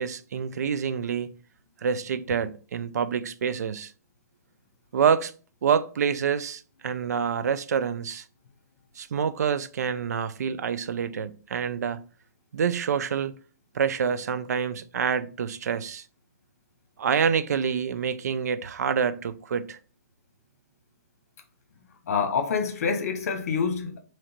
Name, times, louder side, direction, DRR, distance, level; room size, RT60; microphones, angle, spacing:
voice 1, 0.0-1.3 1.8-3.9 4.9-5.3 5.6-8.2 9.0-12.0 12.5-13.3 13.7-16.0 17.0-19.8, right 7 dB, 75° right, 0.5 m, -27 dB
voice 2, 22.1-24.0, left 6 dB, 60° left, 1.1 m, -26 dB
3.7 x 3.1 x 4.4 m
hypercardioid pair, 155°, 9 cm